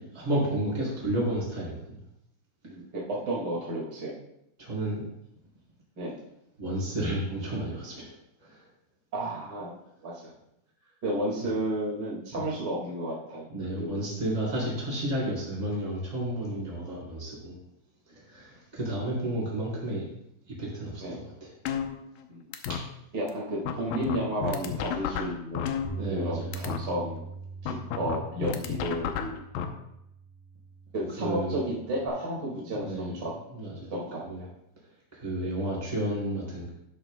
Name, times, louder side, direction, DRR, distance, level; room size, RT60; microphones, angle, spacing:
voice 1, 0.1-2.0 4.6-5.0 6.6-8.1 8.4-8.6 12.3-12.4 13.5-17.5 18.3-20.1 20.6-21.5 25.9-26.6 31.2-31.6 32.6-33.1 33.5-33.9 34.2-34.4 35.2-36.7, right 1 dB, 10° right, -6 dB, 3.9 m, -31 dB
voice 2, 2.6-4.2 6.0-6.2 9.1-9.8 10.0-10.3 11.0-13.5 13.8-14.0 16.5-16.6 21.0-21.2 22.3-22.4 23.1-25.7 26.1-27.2 27.6-29.4 30.9-33.3 33.9-34.2 35.4-35.6, right 1 dB, 35° right, -5 dB, 2.1 m, -32 dB
sound 1, 21.7-22.3 22.5-22.8 23.3-23.4 23.7-26.3 26.5-26.8 27.7-29.6, left 9 dB, 80° left, 2.5 m, -31 dB
Bass guitar, 25.8-32.1, right 4 dB, 40° left, 4.2 m, -42 dB
12.5 x 10.5 x 2.2 m, 0.80 s
omnidirectional pair, 4.1 m